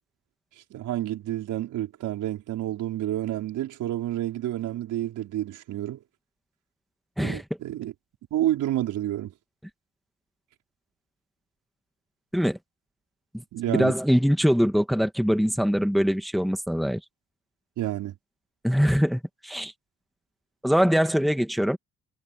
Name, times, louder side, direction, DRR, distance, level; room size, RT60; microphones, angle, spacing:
voice 1, 0.7-6.0 7.2-7.9 8.3-9.3 13.5-13.9 17.8-18.1, right 13 dB, 85° right, 4.9 m, -29 dB
voice 2, 13.7-17.0 18.6-19.7 20.6-21.8, equal, ahead, 1.9 m, -23 dB
cardioid pair, 90°, 30 cm